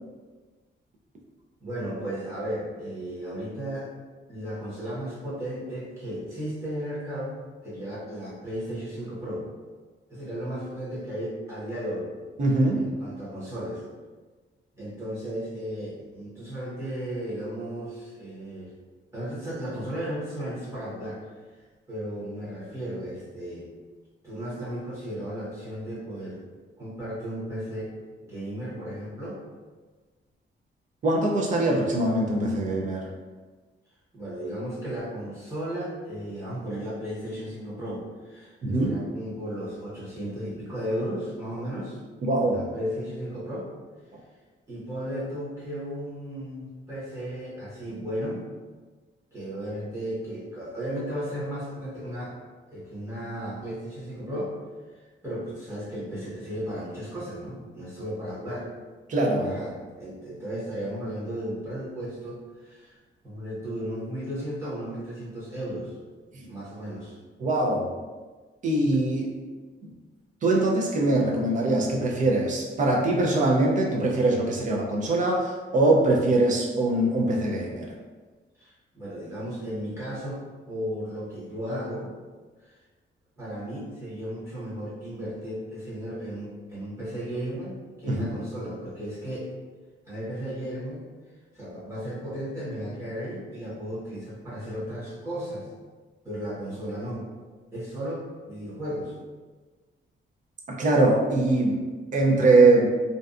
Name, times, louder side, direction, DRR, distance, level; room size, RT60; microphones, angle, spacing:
voice 1, 1.6-3.9 4.3-9.5 10.1-12.1 12.8-13.8 14.7-18.7 19.1-21.2 21.9-23.7 24.2-26.4 26.8-28.0 28.2-29.4 34.1-42.0 42.5-43.7 44.7-48.4 49.3-52.4 52.7-54.5 55.2-58.7 59.4-63.0 63.2-66.0 66.5-67.2 78.6-82.1 82.6-82.7 83.4-89.5 90.1-91.0 91.5-95.7 96.2-97.2 97.7-99.1, equal, 15° right, -10 dB, 0.9 m, -35 dB
voice 2, 12.4-12.9 31.0-33.0 38.6-38.9 42.2-42.6 59.1-59.6 66.3-66.5 67.4-67.9 68.6-69.4 70.4-77.9 88.1-88.2 100.7-101.9 102.1-102.9, right 2 dB, 40° right, -1 dB, 0.4 m, -22 dB
2.6 x 2.2 x 2.4 m, 1.4 s
wide cardioid pair, 180°, 20 cm